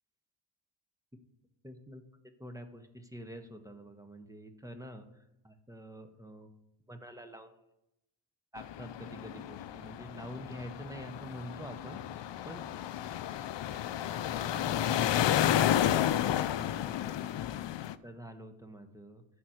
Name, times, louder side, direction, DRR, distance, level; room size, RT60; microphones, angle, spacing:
voice 1, 1.6-2.0 2.4-6.5 6.9-7.5 8.5-12.2 12.4-12.6 14.1-17.0 18.0-19.2, equal, 5° right, 6 dB, 1.2 m, -47 dB
sound 1, 8.6-17.9, left 11 dB, 60° left, 0.6 m, -31 dB
11.0 x 4.4 x 7.8 m, 0.86 s
cardioid pair, 80°, 50 cm